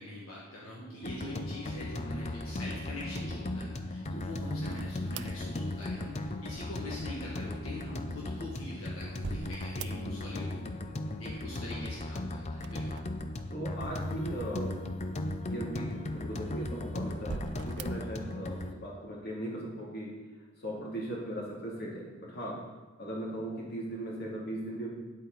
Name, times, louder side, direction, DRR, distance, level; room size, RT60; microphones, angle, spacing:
voice 1, 0.0-10.7 11.2-13.0, left 1 dB, 75° left, -5 dB, 1.8 m, -43 dB
sound 1, 1.0-18.7, left 1 dB, 30° left, 0.6 m, -37 dB
sound 2, 4.7-6.3 8.2-10.4 10.7-11.4 12.5-14.7 15.2-15.3 16.2-16.7 17.2-18.1, right 5 dB, 55° right, 0.4 m, -45 dB
voice 2, 9.8-10.4 13.5-20.1 20.6-22.6 23.0-24.9, right 1 dB, 50° left, -3 dB, 2.8 m, -39 dB
9.6 x 8.5 x 4.0 m, 1.3 s
head